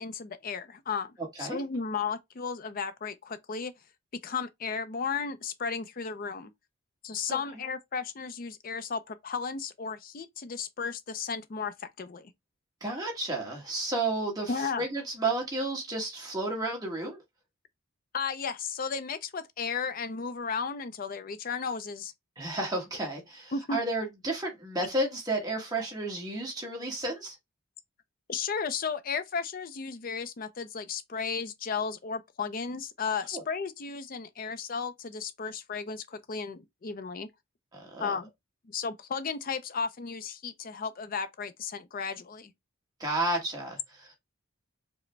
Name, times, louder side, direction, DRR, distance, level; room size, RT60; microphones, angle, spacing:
voice 1, 0.0-3.7 4.2-6.5 7.0-12.3 14.5-14.8 18.1-22.1 23.5-23.8 28.3-37.3 38.0-38.3 38.7-42.5, left 5 dB, 45° left, 0.4 m, -34 dB
voice 2, 12.8-17.2 22.4-27.3 33.3-33.4 37.7-38.2 43.0-44.1, right 2 dB, 20° right, 1.3 m, -32 dB
4.8 x 2.1 x 3.2 m
head